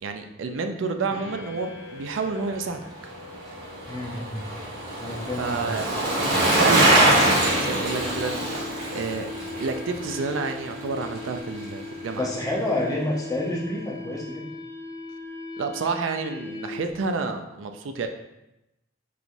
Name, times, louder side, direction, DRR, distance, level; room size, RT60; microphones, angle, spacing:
voice 1, 0.0-2.8 5.4-5.9 6.5-8.3 8.9-9.3 9.6-12.3 15.6-18.1, right 4 dB, 90° right, 6 dB, 0.4 m, -29 dB
sound 1, 1.1-17.0, left 4 dB, 70° left, 0.5 m, -39 dB
Bicycle, 2.9-11.3 11.6-11.7, right 1 dB, 60° right, 1.1 m, -24 dB
voice 2, 3.9-4.5 5.0-5.8 12.1-14.4, left 1 dB, 20° left, -4 dB, 0.8 m, -29 dB
4.7 x 2.9 x 2.6 m, 0.91 s
head